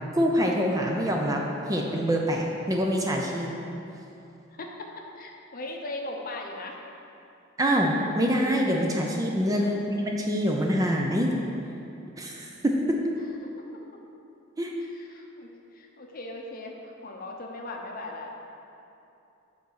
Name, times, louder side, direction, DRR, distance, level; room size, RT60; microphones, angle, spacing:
voice 1, 0.1-1.4 1.7-3.5 7.6-11.3 12.2-12.7 14.6-14.7, equal, 15° right, 0 dB, 0.5 m, -25 dB
voice 2, 4.5-6.8 9.6-9.8 13.4-13.8 14.8-18.4, left 2 dB, 40° left, 1 dB, 0.7 m, -39 dB
7.1 x 4.0 x 6.3 m, 2.8 s
head